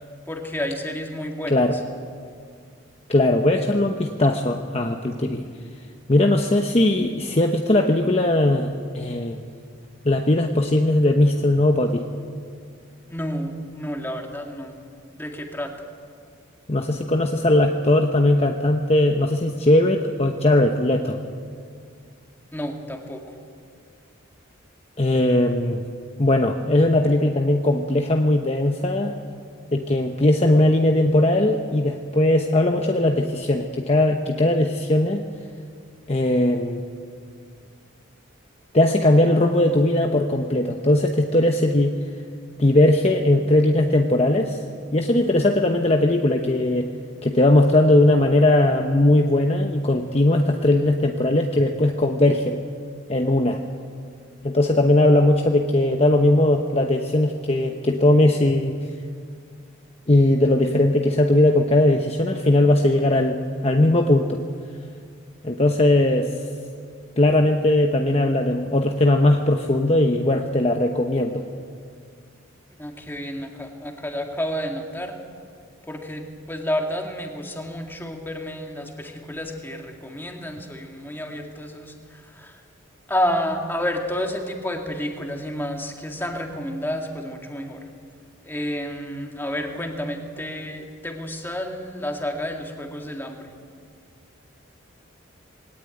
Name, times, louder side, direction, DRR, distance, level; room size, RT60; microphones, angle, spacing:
voice 1, 0.3-1.8 13.1-14.8 15.2-15.7 22.5-23.3 72.8-75.1 75.9-82.6 83.1-87.9 88.4-93.5, equal, 10° left, 2 dB, 2.1 m, -30 dB
voice 2, 3.1-5.4 6.1-9.4 10.0-12.0 16.7-21.2 25.0-25.8 26.2-29.1 29.7-35.2 36.1-36.8 38.7-41.9 42.6-44.6 44.9-46.9 47.2-52.6 53.1-53.6 54.4-58.8 60.1-64.4 65.4-66.3 67.2-71.4, left 1 dB, 30° left, 3 dB, 1.0 m, -19 dB
21.5 x 18.0 x 9.1 m, 2.1 s
head